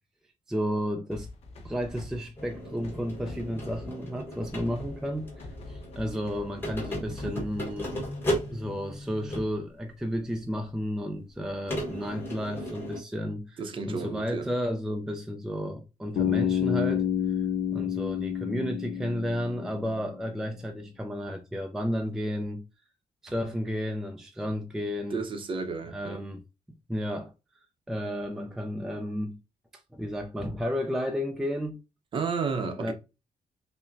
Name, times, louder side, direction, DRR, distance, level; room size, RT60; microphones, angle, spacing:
voice 1, 0.5-1.3 1.6-7.9 8.5-13.6 13.9-17.1 17.7-22.6 23.2-25.2 25.9-26.4 26.9-27.3 27.9-29.4 29.9-31.8 32.8-32.9, equal, 5° right, 0.3 m, -32 dB
sound 1, 1.1-7.9, left 2 dB, 50° left, 0.8 m, -45 dB
sound 2, 2.4-9.7 10.5-10.6 11.7-13.0, equal, 15° left, 1.1 m, -36 dB
voice 2, 13.6-14.5 25.1-26.2 32.1-32.9, right 5 dB, 40° right, 0.6 m, -32 dB
Bass guitar, 16.2-20.1, left 9 dB, 80° left, 0.6 m, -29 dB
5.5 x 2.1 x 2.5 m
wide cardioid pair, 170°, 14 cm